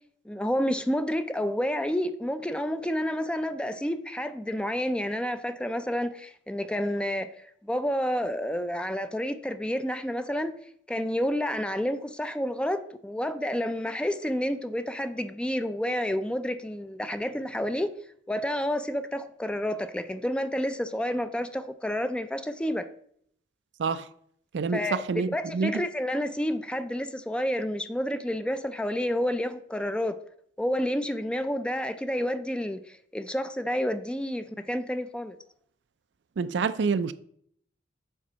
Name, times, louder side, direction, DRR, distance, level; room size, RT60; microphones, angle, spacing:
voice 1, 0.3-7.3 7.6-10.6 10.9-17.9 18.3-22.9 24.7-30.2 30.6-35.4, equal, 5° left, 0.4 m, -29 dB
voice 2, 24.5-25.8 36.4-37.1, right 5 dB, 65° right, 0.4 m, -27 dB
7.7 x 4.1 x 5.5 m
head